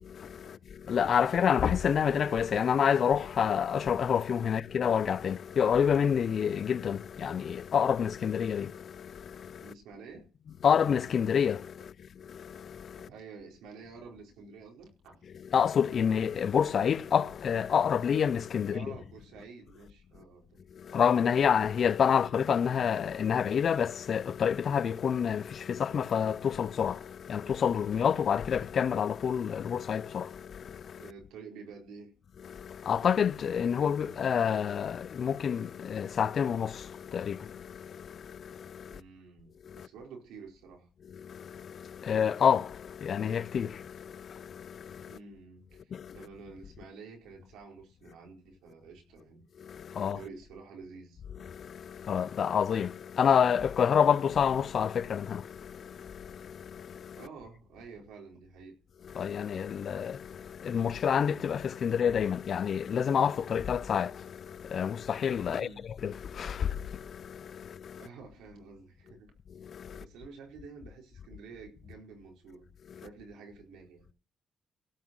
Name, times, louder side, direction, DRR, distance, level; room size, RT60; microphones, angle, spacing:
voice 1, 0.1-9.7 10.6-13.1 15.3-19.0 20.7-31.1 32.4-39.0 39.6-39.9 41.1-45.2 45.9-46.3 49.6-50.2 51.4-57.2 59.0-65.7 66.0-68.1 69.5-70.0 72.9-73.1, left 7 dB, 55° left, 0.6 m, -29 dB
voice 2, 9.6-10.2 13.1-15.2 18.7-20.6 31.0-32.1 38.9-40.9 45.1-49.4 50.0-51.2 57.2-58.7 65.5-65.9 68.0-69.3 69.9-72.7 73.0-74.1, right 5 dB, 90° right, 4.6 m, -49 dB
17.0 x 6.2 x 6.2 m
cardioid pair, 90°, 0 cm